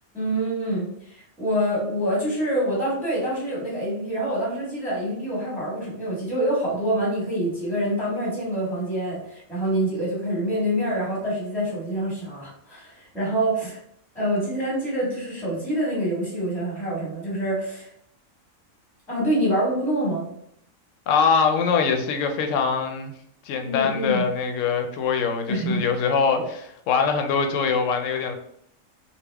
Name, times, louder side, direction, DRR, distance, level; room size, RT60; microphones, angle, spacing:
voice 1, 0.1-13.8 14.1-17.9 19.1-20.3 23.6-24.2 25.5-25.8 26.3-26.4, right 1 dB, ahead, -6 dB, 1.4 m, -26 dB
voice 2, 21.1-23.1 23.4-28.3, left 5 dB, 80° left, 6 dB, 0.9 m, -23 dB
3.4 x 2.3 x 3.3 m, 0.73 s
omnidirectional pair, 1.3 m